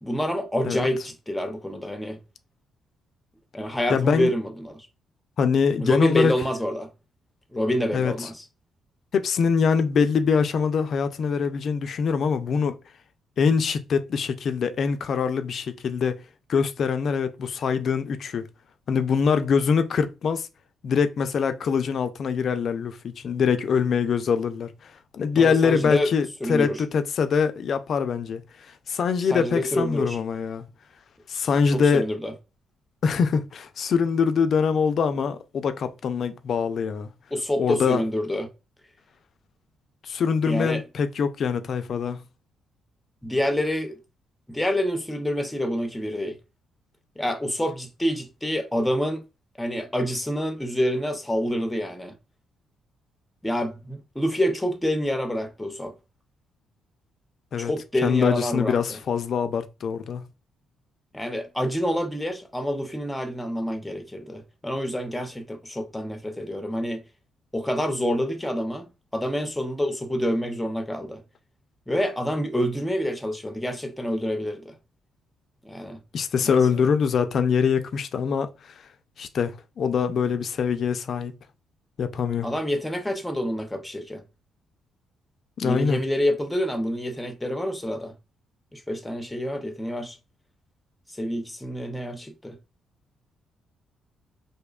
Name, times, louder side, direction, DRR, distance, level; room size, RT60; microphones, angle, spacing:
voice 1, 0.0-2.2 3.5-4.9 5.8-6.9 7.5-8.4 25.4-26.1 26.4-26.8 29.3-30.2 31.7-32.3 37.3-38.5 40.5-40.8 43.2-44.0 44.5-46.4 47.2-49.2 49.6-52.1 53.4-55.9 57.6-59.0 61.1-67.0 67.5-71.2 71.9-74.7 75.7-76.0 76.4-76.6 82.4-84.2 85.6-88.1 88.7-90.2 91.2-92.6, equal, 10° left, 0.5 m, -27 dB
voice 2, 3.9-4.3 5.4-6.3 7.9-8.3 9.1-12.8 13.4-16.2 16.5-18.5 18.9-20.5 20.8-30.6 31.3-32.1 33.0-37.1 37.6-38.0 40.0-42.2 57.5-57.7 58.0-60.3 76.1-78.7 79.2-81.3 82.0-82.5 85.6-86.0, left 6 dB, 55° left, 0.3 m, -24 dB
2.6 x 2.1 x 2.3 m
cardioid pair, 90°, 0 cm